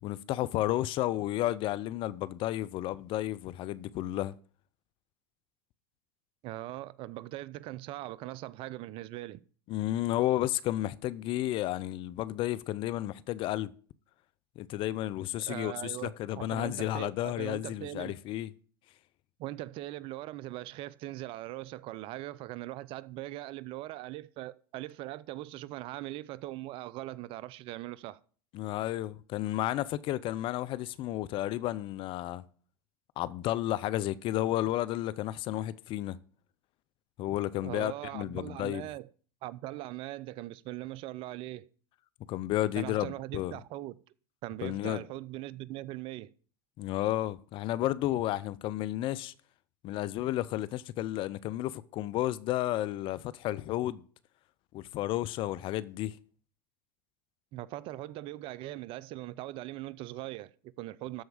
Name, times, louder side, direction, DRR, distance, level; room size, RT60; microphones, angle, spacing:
voice 1, 0.0-4.3 9.7-13.7 14.6-18.5 28.5-32.4 33.2-36.2 37.2-38.8 42.3-43.5 44.6-45.0 46.8-49.3 49.8-54.0 54.7-56.2, left 14 dB, 45° left, 0.6 m, -32 dB
voice 2, 6.4-9.4 15.4-18.2 19.4-28.2 37.6-39.1 39.4-41.7 42.8-44.0 44.4-46.3 57.5-61.2, right 16 dB, 50° right, 0.6 m, -40 dB
13.0 x 4.6 x 7.1 m
hypercardioid pair, 95°, 12 cm